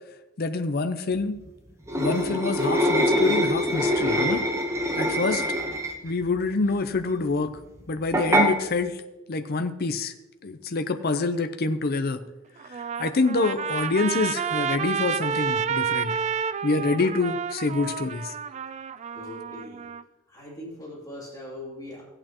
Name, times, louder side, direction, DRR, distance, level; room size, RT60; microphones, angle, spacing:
voice 1, 0.4-1.4 1.9-4.5 5.0-5.4 6.0-7.5 7.9-9.0 9.3-10.1 10.4-12.2 12.7-16.1 16.6-18.3, left 3 dB, 50° left, 8 dB, 0.6 m, -26 dB
sound 1, 1.9-6.1 8.1-8.5, equal, 15° right, 0.9 m, -24 dB
Trumpet, 12.6-20.0, right 7 dB, 35° right, 0.3 m, -30 dB
voice 2, 19.1-19.8 20.3-22.0, left 1 dB, 20° left, -4 dB, 2.7 m, -40 dB
15.5 x 8.8 x 2.9 m, 1.0 s
head